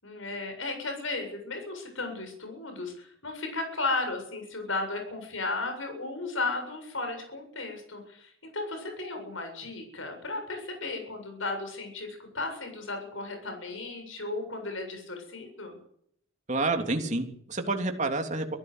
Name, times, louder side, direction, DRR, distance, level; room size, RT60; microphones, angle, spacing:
voice 1, 0.0-15.8, left 3 dB, 65° left, 5 dB, 7.5 m, -35 dB
voice 2, 16.5-18.6, right 2 dB, 35° right, 4 dB, 3.3 m, -29 dB
25.5 x 15.5 x 8.1 m, 0.67 s
head